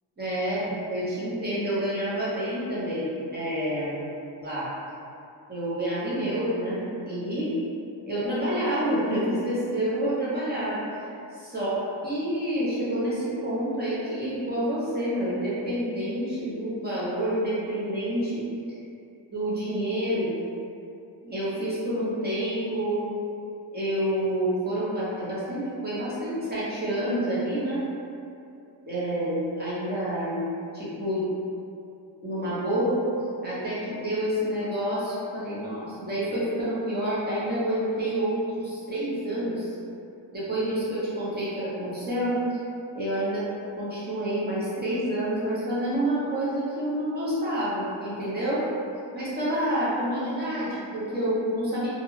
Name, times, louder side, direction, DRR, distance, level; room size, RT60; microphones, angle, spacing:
voice 1, 0.2-3.9 4.4-4.7 5.5-7.5 8.1-18.8 19.3-20.3 21.2-23.0 23.7-27.8 28.8-30.4 30.7-31.3 32.2-33.0 33.4-39.7 40.3-42.6 42.9-43.4 43.8-48.6 49.1-51.9, right 1 dB, 20° right, -10 dB, 0.8 m, -28 dB
2.4 x 2.2 x 3.0 m, 2.6 s
wide cardioid pair, 165°, 46 cm